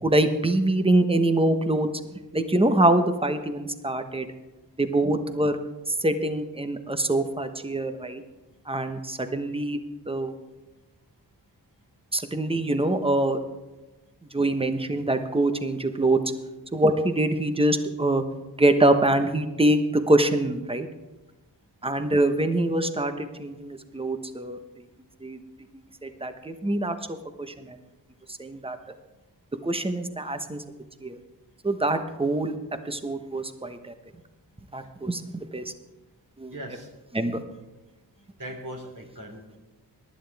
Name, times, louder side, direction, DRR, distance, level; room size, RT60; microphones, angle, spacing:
voice 1, 0.0-1.9 2.3-4.2 4.8-5.6 6.0-8.2 8.7-9.8 10.1-10.3 12.1-13.4 14.3-16.2 16.7-18.2 18.6-20.9 21.8-24.6 25.2-25.4 25.7-26.9 27.4-27.8 28.4-28.8 29.6-30.6 31.0-31.2 31.6-32.5 32.9-33.9 34.7-35.6 36.4-36.5 37.1-37.4, right 1 dB, 15° right, 8 dB, 1.2 m, -24 dB
voice 2, 36.5-36.9 38.1-39.6, right 1 dB, 50° right, 1 dB, 3.1 m, -40 dB
19.0 x 11.5 x 3.5 m, 1.1 s
cardioid pair, 60°, 40 cm